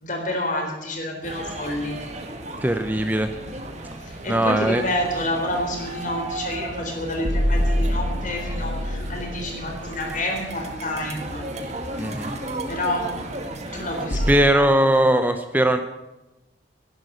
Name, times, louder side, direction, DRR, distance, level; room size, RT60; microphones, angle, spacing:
voice 1, 0.0-2.0 4.0-11.4 12.7-13.1 13.7-14.7, left 1 dB, 45° left, 2 dB, 3.8 m, -29 dB
sound 1, 1.2-14.4, right 1 dB, 40° right, 1.9 m, -35 dB
voice 2, 2.6-3.3 4.3-4.8 12.0-12.4 14.3-15.8, right 1 dB, 10° right, 8 dB, 0.7 m, -19 dB
sound 2, 2.9-3.4 7.2-10.6 14.1-14.3, equal, 70° left, 1.9 m, -26 dB
11.5 x 11.0 x 8.5 m, 1.0 s
head